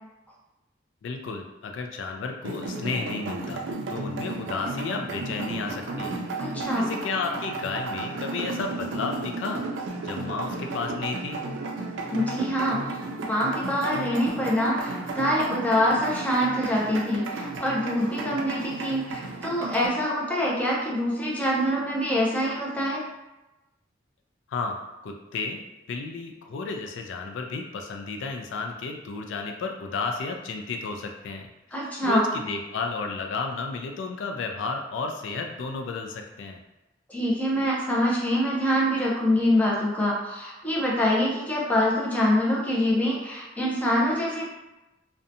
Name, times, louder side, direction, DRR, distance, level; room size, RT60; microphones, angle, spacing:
voice 1, 1.0-6.2 6.5-9.6 10.0-11.4 24.5-24.8 25.0-25.6 25.9-31.5 31.8-36.6, left 4 dB, 85° left, 4 dB, 0.3 m, -32 dB
sound 1, 2.4-19.9, right 3 dB, 90° right, 0.4 m, -33 dB
voice 2, 6.4-6.9 12.1-12.8 13.3-23.0 31.7-32.3 37.1-44.5, equal, 10° left, -5 dB, 0.5 m, -25 dB
2.6 x 2.1 x 2.5 m, 1.0 s
head